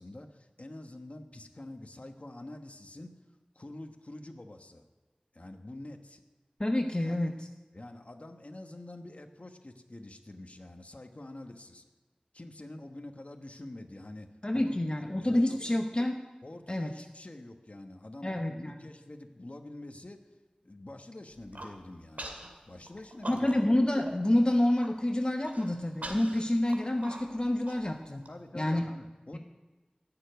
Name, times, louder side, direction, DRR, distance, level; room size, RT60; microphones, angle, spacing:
voice 1, 0.0-3.1 3.5-4.8 5.3-6.2 7.0-7.2 7.7-11.8 12.3-14.9 15.1-15.8 16.4-20.2 20.6-22.4 22.7-23.6 28.3-29.4, left 1 dB, 55° left, 5 dB, 1.3 m, -46 dB
voice 2, 6.6-7.5 14.4-16.2 16.7-16.9 18.2-18.7 23.2-28.3 28.5-28.8 29.3-29.4, left 1 dB, 35° left, 4 dB, 0.9 m, -28 dB
Human voice, 21.3-21.7 22.2-22.5 22.8-23.8 24.1-24.2 24.5-24.9 25.4-28.3, right 1 dB, 70° right, 2.3 m, -43 dB
15.0 x 7.0 x 9.3 m, 1.3 s
wide cardioid pair, 45°, 3 cm